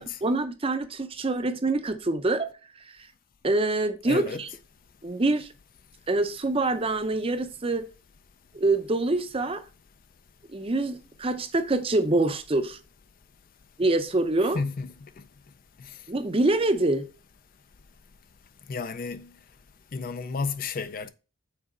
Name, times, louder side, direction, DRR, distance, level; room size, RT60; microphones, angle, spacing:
voice 1, 0.2-2.5 2.9-3.0 3.4-4.5 5.0-5.5 6.1-7.9 8.5-9.6 10.5-12.8 13.8-14.6 16.1-17.1, right 2 dB, 25° right, 0.6 m, -25 dB
voice 2, 4.1-4.4 14.5-14.9 15.8-15.9 18.7-19.3 19.9-21.1, left 4 dB, 45° left, 0.4 m, -32 dB
6.0 x 4.0 x 5.3 m
head